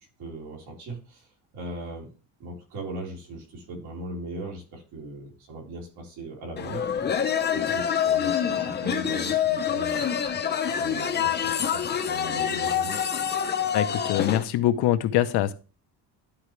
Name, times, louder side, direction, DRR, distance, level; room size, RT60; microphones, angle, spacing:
voice 1, 0.2-1.3 1.5-2.1 2.4-6.9 7.5-10.1 10.8-13.0, right 2 dB, 70° right, -1 dB, 3.7 m, -38 dB
sound 1, 6.6-14.4, left 8 dB, 25° left, 0.7 m, -26 dB
voice 2, 13.7-15.5, left 13 dB, 75° left, 10 dB, 0.9 m, -23 dB
12.0 x 4.8 x 3.3 m, 0.33 s
cardioid pair, 170°, 39 cm